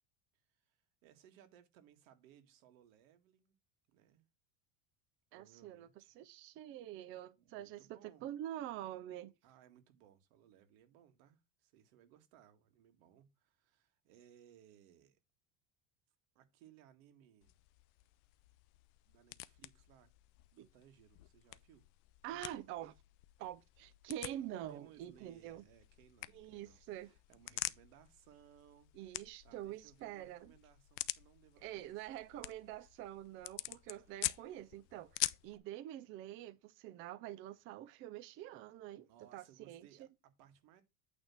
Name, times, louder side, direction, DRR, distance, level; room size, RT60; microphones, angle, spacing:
voice 1, 0.5-3.5 3.9-4.3 5.3-6.2 7.4-8.3 9.4-15.2 16.4-17.5 19.1-20.1 20.5-21.9 22.3-22.7 24.2-32.5 39.1-40.8, right 10 dB, 80° right, 1.8 m, -64 dB
voice 2, 5.3-5.9 6.2-9.3 20.6-20.7 22.2-22.9 23.4-25.6 26.3-27.1 28.9-30.5 31.6-39.9, right 12 dB, 30° right, 0.4 m, -46 dB
sound 1, 17.4-35.6, left 20 dB, 60° left, 0.5 m, -46 dB
8.9 x 3.5 x 5.8 m
cardioid pair, 170°, 41 cm